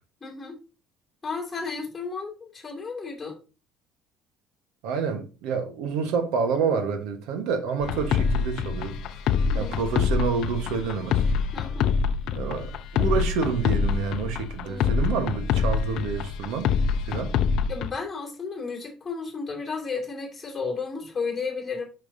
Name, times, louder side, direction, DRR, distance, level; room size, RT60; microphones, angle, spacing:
voice 1, 0.2-0.6 1.2-3.4 9.5-9.8 11.5-11.9 14.6-15.0 17.1-17.2 17.7-21.8, left 4 dB, 10° left, 2.6 m, -33 dB
voice 2, 4.8-9.0 9.3-11.2 12.3-16.7 17.1-17.3, right 6 dB, 80° right, 1.3 m, -28 dB
sound 1, 7.8-17.9, left 6 dB, 55° left, 0.6 m, -25 dB
8.7 x 5.8 x 2.8 m
cardioid pair, 160°, 0 cm